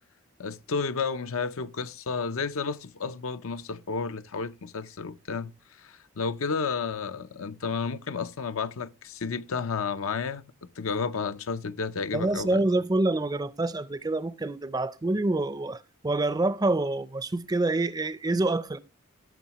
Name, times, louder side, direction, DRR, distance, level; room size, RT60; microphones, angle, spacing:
voice 1, 0.4-10.4 10.8-12.6, left 5 dB, 80° left, 0.6 m, -32 dB
voice 2, 12.1-18.8, right 2 dB, 20° right, 0.5 m, -27 dB
17.0 x 7.1 x 3.0 m
head